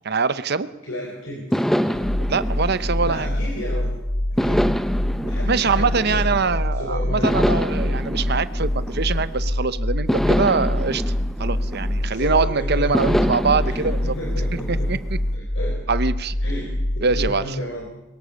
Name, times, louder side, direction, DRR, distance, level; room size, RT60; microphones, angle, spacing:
voice 1, 0.0-0.7 2.2-3.3 5.4-11.1 11.4-14.2 14.7-15.2 15.9-16.3 17.0-17.6, right 4 dB, 55° right, 14 dB, 0.9 m, -23 dB
voice 2, 0.8-1.4 1.7-2.1 3.0-3.9 4.4-4.7 5.2-7.5 12.1-13.2 13.7-14.9 15.3-15.8 16.4-16.7 17.0-17.8, equal, 75° left, 0 dB, 4.1 m, -32 dB
sound 1, 1.5-3.8 4.4-6.6 7.2-9.5 10.1-12.3 12.9-15.2, equal, ahead, 0.7 m, -26 dB
sound 2, 1.9-17.3, left 1 dB, 40° left, 1.1 m, -25 dB
23.0 x 22.0 x 6.5 m, 1.0 s
head